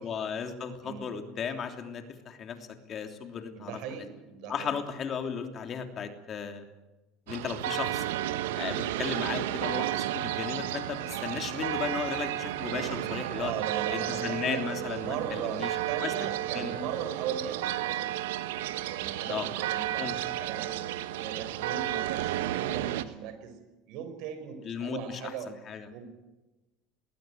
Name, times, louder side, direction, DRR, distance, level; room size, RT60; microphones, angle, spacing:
voice 1, 0.0-4.0 4.5-6.6 7.3-8.0 8.5-13.5 13.9-16.8 19.2-19.5 20.0-20.5 24.6-25.3 25.7-25.9, left 7 dB, 40° left, 6 dB, 3.1 m, -36 dB
voice 2, 3.6-4.7 13.4-14.7 15.0-18.1 18.8-20.2 20.4-20.9 21.1-23.6 23.9-25.5 25.9-26.1, right 8 dB, 70° right, 9 dB, 4.8 m, -38 dB
sound 1, 7.3-23.0, right 13 dB, 90° right, 1.2 m, -32 dB
20.5 x 18.5 x 9.2 m, 1.1 s
supercardioid pair, 105°, 0 cm